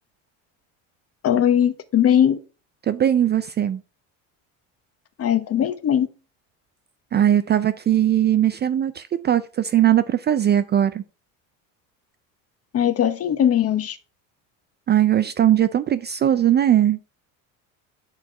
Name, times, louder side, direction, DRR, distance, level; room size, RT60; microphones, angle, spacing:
voice 1, 1.2-2.4 5.2-6.1 12.7-14.0, left 9 dB, 35° left, 0.9 m, -19 dB
voice 2, 2.8-3.8 7.1-11.0 14.9-17.0, right 11 dB, 30° right, 0.4 m, -19 dB
7.2 x 4.5 x 4.7 m
supercardioid pair, 110°, 39 cm